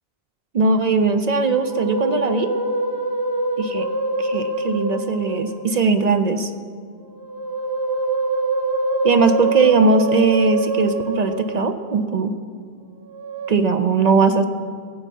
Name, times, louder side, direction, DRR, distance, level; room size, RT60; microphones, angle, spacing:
voice 1, 0.5-2.5 3.6-3.9 4.2-6.5 9.0-12.3 13.5-14.4, right 4 dB, 50° right, 9 dB, 0.5 m, -19 dB
Musical instrument, 1.2-5.8 7.1-12.0 13.1-13.5, right 2 dB, 20° right, 0.8 m, -25 dB
16.5 x 7.2 x 5.3 m, 2.2 s
omnidirectional pair, 1.0 m